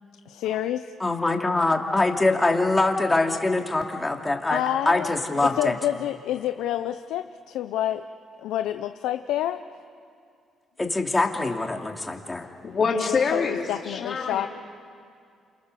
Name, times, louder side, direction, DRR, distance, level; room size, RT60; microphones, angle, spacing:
voice 1, 0.3-0.9 4.5-8.0 8.4-9.6 12.9-14.5, left 12 dB, 90° left, 9 dB, 0.6 m, -28 dB
voice 2, 1.0-5.7 10.8-12.5, left 2 dB, 15° left, 2 dB, 2.6 m, -24 dB
voice 3, 12.6-14.5, left 5 dB, 45° left, 0 dB, 3.9 m, -26 dB
28.0 x 28.0 x 6.8 m, 2.3 s
cardioid pair, 90°, 0 cm